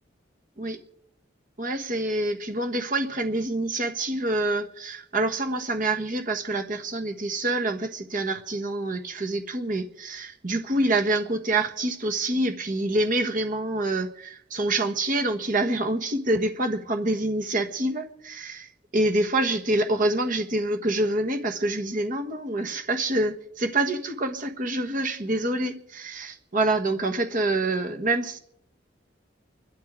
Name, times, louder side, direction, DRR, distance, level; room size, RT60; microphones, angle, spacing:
voice 1, 1.6-28.4, right 2 dB, 45° right, 6 dB, 1.4 m, -26 dB
29.0 x 12.5 x 3.7 m, 0.74 s
head